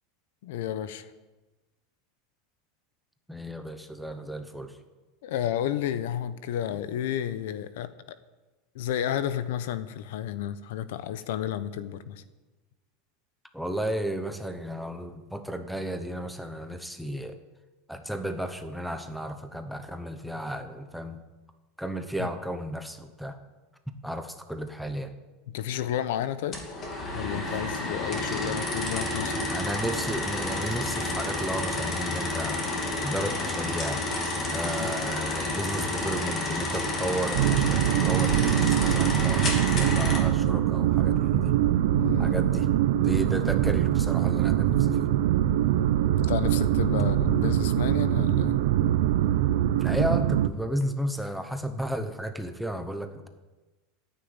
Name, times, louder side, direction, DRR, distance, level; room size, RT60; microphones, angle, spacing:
voice 1, 0.4-1.1 5.2-7.9 8.7-12.2 22.2-22.3 25.5-26.7 27.1-29.5 34.7-34.9 41.9-42.4 46.2-48.6, left 10 dB, 65° left, 13 dB, 1.0 m, -31 dB
voice 2, 3.3-4.8 13.5-17.4 17.9-21.2 21.8-23.4 24.0-25.1 29.5-34.0 34.5-41.6 42.2-42.7 42.9-45.1 49.8-53.3, equal, ahead, 6 dB, 0.9 m, -33 dB
sound 1, 26.5-40.2, left 2 dB, 20° left, 2.7 m, -30 dB
sound 2, 37.3-50.5, right 12 dB, 65° right, 0.7 m, -23 dB
14.0 x 9.4 x 8.9 m, 1.2 s
supercardioid pair, 175°, 0 cm